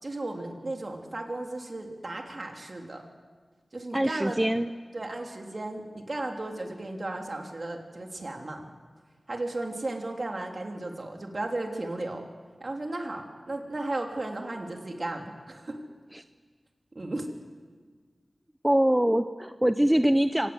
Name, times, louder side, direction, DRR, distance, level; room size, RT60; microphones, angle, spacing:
voice 1, 0.0-3.0 3.7-4.4 4.9-8.6 9.3-12.3 12.6-15.8 16.9-17.3, right 2 dB, 50° right, 2 dB, 3.2 m, -35 dB
voice 2, 3.9-4.7 16.1-16.2 18.6-20.5, right 1 dB, 10° right, 10 dB, 0.7 m, -23 dB
26.5 x 18.0 x 8.1 m, 1.5 s
wide cardioid pair, 80°, 0 cm